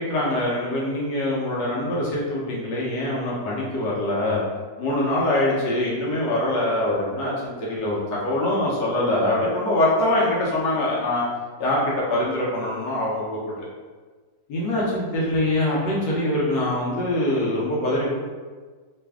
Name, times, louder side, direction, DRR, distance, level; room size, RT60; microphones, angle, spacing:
voice 1, 0.0-4.4 4.8-11.2 11.6-13.6 14.5-18.1, left 1 dB, 85° left, -6 dB, 1.4 m, -24 dB
3.2 x 2.5 x 3.4 m, 1.4 s
omnidirectional pair, 1.9 m